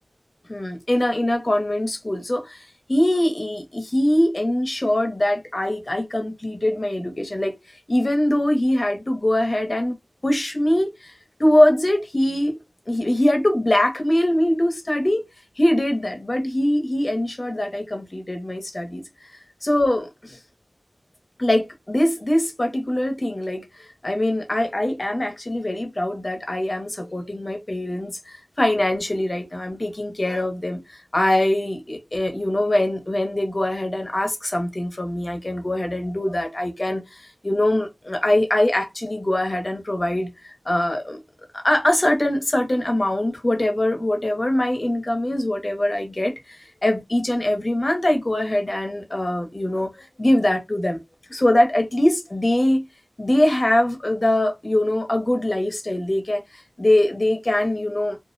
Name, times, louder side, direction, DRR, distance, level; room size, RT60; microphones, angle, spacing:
voice 1, 0.5-7.5 7.9-10.0 10.2-11.1 11.4-12.6 12.9-15.2 15.6-19.0 19.6-20.4 21.4-40.3 40.7-41.2 41.5-51.0 51.3-52.8 53.2-58.2, left 1 dB, 45° left, 0.7 m, -22 dB
2.3 x 2.1 x 2.5 m
wide cardioid pair, 60°, 0 cm